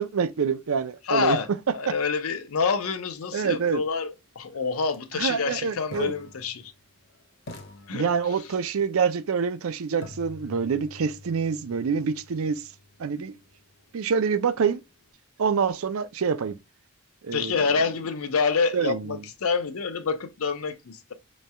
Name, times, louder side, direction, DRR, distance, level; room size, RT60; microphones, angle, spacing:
voice 1, 0.0-1.4 1.9-2.0 3.3-3.8 5.1-6.1 7.9-12.7 13.0-13.4 13.9-14.8 15.4-16.6 17.2-17.6 18.7-19.2, right 6 dB, 80° right, 0.5 m, -26 dB
voice 2, 1.1-1.5 1.7-6.7 7.9-8.1 17.3-21.1, left 5 dB, 80° left, 0.6 m, -27 dB
sound 1, 4.8-5.0 5.9-7.1 7.5-8.7 10.0-13.9, left 2 dB, 50° left, 0.9 m, -47 dB
5.4 x 3.1 x 2.2 m
head